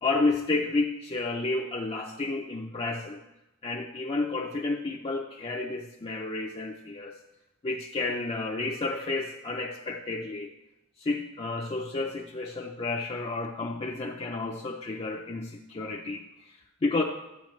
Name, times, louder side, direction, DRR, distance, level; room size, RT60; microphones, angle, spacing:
voice 1, 0.0-3.2 3.6-7.2 7.6-10.5 11.0-17.0, left 3 dB, 25° left, 1 dB, 0.5 m, -31 dB
13.5 x 8.3 x 3.1 m, 0.92 s
head